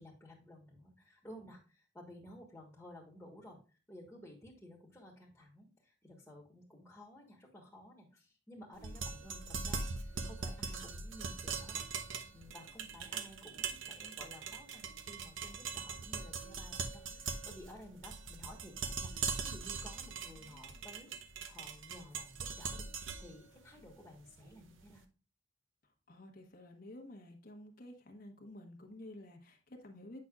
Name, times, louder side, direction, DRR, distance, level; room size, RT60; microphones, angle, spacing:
voice 1, 0.0-11.9 12.3-21.1 21.5-25.0, left 1 dB, 10° left, 1.3 m, -54 dB
sound 1, 8.8-24.8, right 5 dB, 80° right, 0.7 m, -41 dB
voice 2, 26.1-30.2, left 1 dB, 50° left, 1.0 m, -51 dB
8.5 x 5.8 x 2.4 m
head